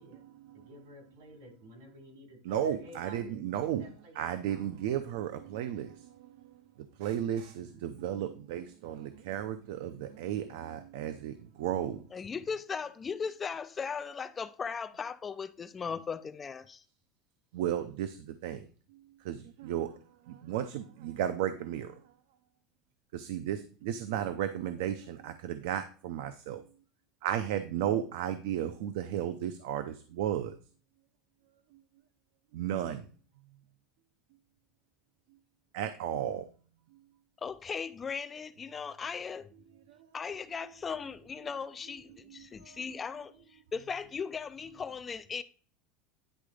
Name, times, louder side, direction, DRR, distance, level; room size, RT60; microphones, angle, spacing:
voice 1, 0.0-0.7 2.4-3.9 4.1-12.1 17.5-22.1 23.1-26.6 27.2-30.6 31.7-31.8 32.5-33.1 33.4-33.6 35.7-36.5 36.9-37.0 39.9-40.1 42.2-42.8, right 10 dB, 65° right, 0.6 m, -35 dB
voice 2, 0.5-4.9 7.4-7.9, right 1 dB, 80° right, 3.9 m, -53 dB
voice 3, 12.1-16.8 37.4-39.5 40.1-45.4, left 6 dB, 15° left, 0.3 m, -38 dB
10.0 x 3.8 x 4.9 m
cardioid pair, 180°, 0 cm